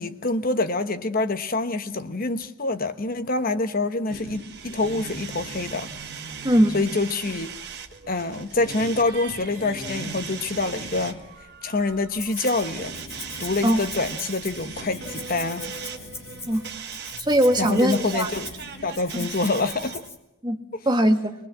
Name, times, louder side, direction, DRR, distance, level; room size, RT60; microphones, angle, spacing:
voice 1, 0.0-5.9 6.7-7.5 8.1-11.2 11.6-12.9 13.4-15.7 17.6-18.5 18.8-20.0, left 3 dB, 45° left, 1.1 m, -26 dB
sound 1, 4.1-19.9, equal, 60° left, 6.7 m, -43 dB
sound 2, 4.1-20.1, right 7 dB, 50° right, 1.5 m, -39 dB
voice 2, 6.4-6.7 13.6-13.8 16.5-16.6 17.2-18.3 19.1-19.3 20.4-20.6 20.8-21.3, equal, 20° right, 1.4 m, -20 dB
Rattle (instrument), 12.2-12.7 12.9-20.2, left 3 dB, 15° left, 2.3 m, -41 dB
24.0 x 20.0 x 7.4 m
head